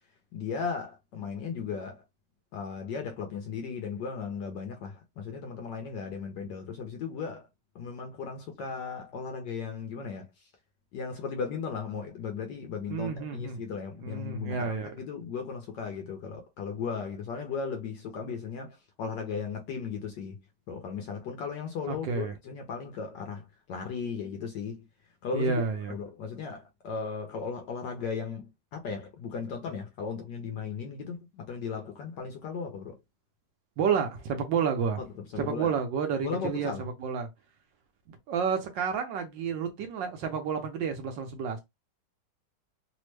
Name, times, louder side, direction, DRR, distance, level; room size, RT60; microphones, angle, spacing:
voice 1, 0.3-2.0 2.5-7.5 7.7-10.3 10.9-20.4 20.7-24.8 25.2-25.6 25.9-33.0 35.0-35.1 35.3-35.8 36.2-36.9, left 5 dB, 70° left, 1.1 m, -36 dB
voice 2, 12.9-13.6 14.0-15.0 21.9-22.3 25.3-25.9 33.8-35.0 35.4-37.3 38.1-41.6, right 6 dB, 75° right, 1.2 m, -30 dB
3.4 x 2.0 x 3.1 m
omnidirectional pair, 2.3 m